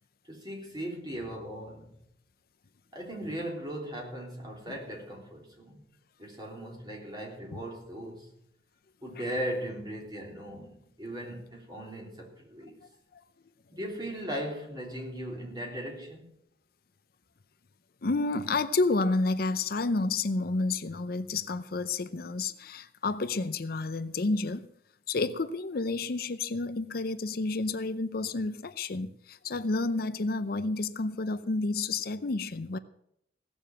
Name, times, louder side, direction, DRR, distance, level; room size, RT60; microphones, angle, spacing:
voice 1, 0.2-2.0 2.9-5.8 6.2-8.3 9.0-12.8 13.7-16.3, right 1 dB, 25° right, 3.5 m, -38 dB
voice 2, 18.0-24.7 25.1-32.8, left 3 dB, 55° left, 0.6 m, -30 dB
17.0 x 7.1 x 7.7 m
head